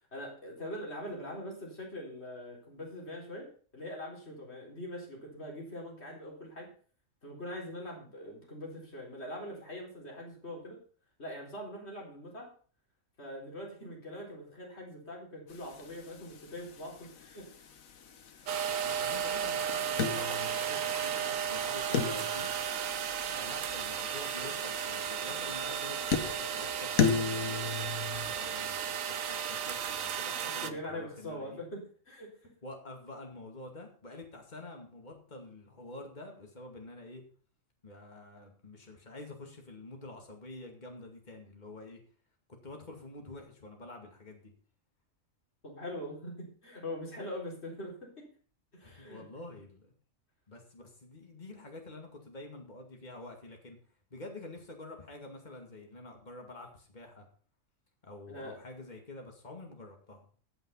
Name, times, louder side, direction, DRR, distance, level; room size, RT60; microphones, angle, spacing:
voice 1, 0.1-3.5 3.7-6.7 7.2-10.8 11.2-12.5 13.2-17.7 30.6-32.5 45.6-48.3 48.7-49.2 58.3-58.6, left 1 dB, 50° left, -1 dB, 4.2 m, -42 dB
sound 1, 15.5-28.3, left 6 dB, 85° left, 1.5 m, -37 dB
voice 2, 18.4-22.6 23.3-31.6 32.6-37.2 37.8-42.0 42.5-44.5 48.8-49.9 50.5-53.8 54.1-57.3 58.0-60.2, left 2 dB, 35° left, 2 dB, 2.4 m, -48 dB
sound 2, 18.5-30.7, right 8 dB, 80° right, 1.3 m, -34 dB
17.0 x 5.8 x 5.6 m, 0.43 s
omnidirectional pair, 1.4 m